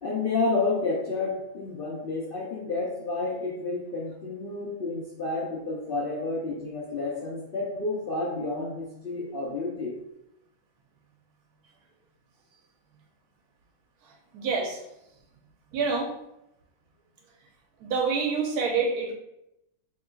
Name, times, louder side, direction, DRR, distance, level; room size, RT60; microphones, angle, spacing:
voice 1, 0.0-10.0, left 3 dB, 65° left, -4 dB, 0.5 m, -30 dB
voice 2, 14.0-14.8 15.7-16.1 17.8-19.1, right 4 dB, 90° right, 1 dB, 1.2 m, -27 dB
3.8 x 2.9 x 2.3 m, 0.84 s
omnidirectional pair, 1.6 m